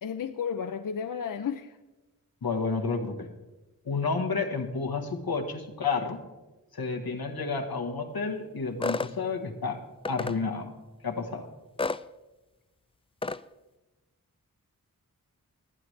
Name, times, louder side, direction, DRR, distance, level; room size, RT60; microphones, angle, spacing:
voice 1, 0.0-1.8, left 7 dB, 65° left, 0.6 m, -33 dB
voice 2, 2.4-3.3 3.8-6.2 6.7-9.8 10.1-10.7 11.0-11.5, left 4 dB, 85° left, 1.3 m, -30 dB
sound 1, 8.8-9.1 10.0-10.4 11.8-12.0 13.2-13.4, left 3 dB, 15° left, 0.3 m, -30 dB
20.0 x 8.8 x 3.2 m
cardioid pair, 40°, 36 cm